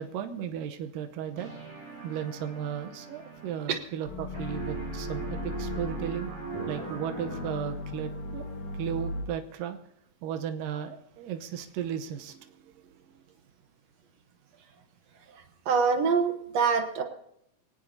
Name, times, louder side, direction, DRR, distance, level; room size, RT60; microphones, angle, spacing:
voice 1, 0.0-1.5 2.0-6.3 6.7-8.5 8.7-9.8 10.2-13.2, right 9 dB, 80° right, 6 dB, 2.5 m, -35 dB
sound 1, 1.3-4.1 4.3-7.9, right 7 dB, 35° right, 6.8 m, -40 dB
sound 2, 4.0-9.2, left 3 dB, 55° left, 3.3 m, -37 dB
voice 2, 15.7-17.0, right 5 dB, 65° right, 6 dB, 1.9 m, -25 dB
24.0 x 17.5 x 2.7 m, 0.75 s
omnidirectional pair, 3.9 m